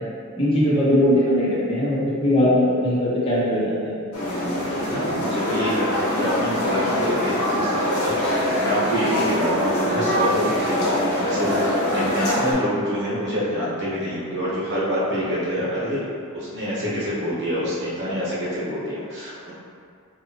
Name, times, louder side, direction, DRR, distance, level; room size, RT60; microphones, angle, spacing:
voice 1, 0.4-4.0, left 1 dB, 25° left, -9 dB, 0.8 m, -20 dB
sound 1, 4.1-12.5, equal, 85° left, 0.9 m, -23 dB
voice 2, 4.9-16.1 16.3-19.5, equal, 55° right, -8 dB, 1.0 m, -26 dB
4.0 x 2.7 x 2.9 m, 2.3 s
head